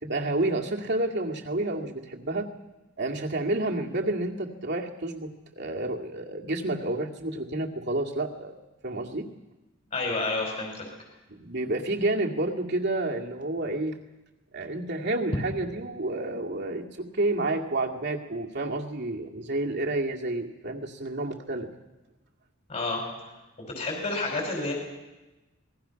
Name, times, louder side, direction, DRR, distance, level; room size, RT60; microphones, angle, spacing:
voice 1, 0.0-2.5 3.0-5.3 5.6-8.5 8.8-9.3 11.4-14.0 14.5-21.7, right 2 dB, 55° right, 1 dB, 2.1 m, -29 dB
voice 2, 9.9-10.9 22.7-23.0 23.8-24.7, left 3 dB, 40° left, -1 dB, 5.5 m, -29 dB
27.5 x 20.0 x 5.8 m, 1.1 s
head